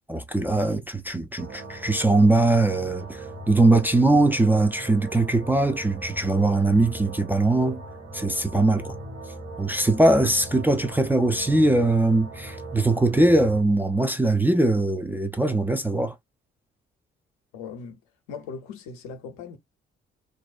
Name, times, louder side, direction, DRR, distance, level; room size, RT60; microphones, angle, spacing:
voice 1, 0.1-7.8 8.1-8.9 9.6-16.1, right 2 dB, 5° right, 0.4 m, -21 dB
sound 1, 1.4-13.6, right 2 dB, 40° right, 1.6 m, -39 dB
voice 2, 17.5-18.0 18.3-19.6, left 5 dB, 70° left, 0.7 m, -38 dB
2.7 x 2.2 x 2.2 m
figure-of-eight pair, 40°, 31 cm